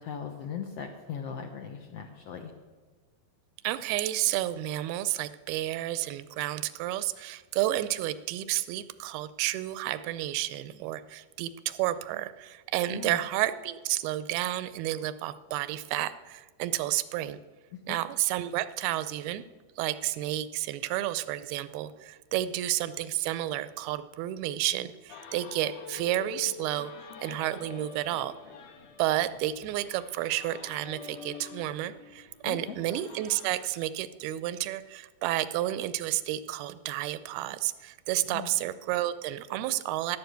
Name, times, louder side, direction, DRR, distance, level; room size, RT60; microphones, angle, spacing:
voice 1, 0.0-2.5 12.9-13.2 17.7-18.0 32.4-32.8 38.3-38.5, left 7 dB, 90° left, 3 dB, 1.3 m, -39 dB
voice 2, 3.6-17.4 17.9-19.4 19.8-26.9 27.2-28.3 29.0-40.2, right 14 dB, 90° right, 14 dB, 2.6 m, -31 dB
sound 1, 25.1-33.6, left 6 dB, 55° left, 1.8 m, -46 dB
11.5 x 11.0 x 8.0 m, 1.3 s
omnidirectional pair, 4.3 m